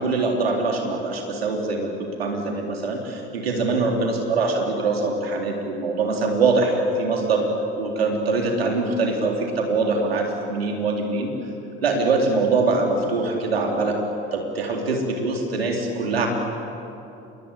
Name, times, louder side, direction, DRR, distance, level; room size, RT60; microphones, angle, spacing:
voice 1, 0.0-7.5 7.8-11.3 11.8-14.0 14.3-16.3, right 3 dB, 90° right, 1 dB, 3.8 m, -23 dB
28.0 x 22.0 x 8.5 m, 2.9 s
hypercardioid pair, 60°, 29 cm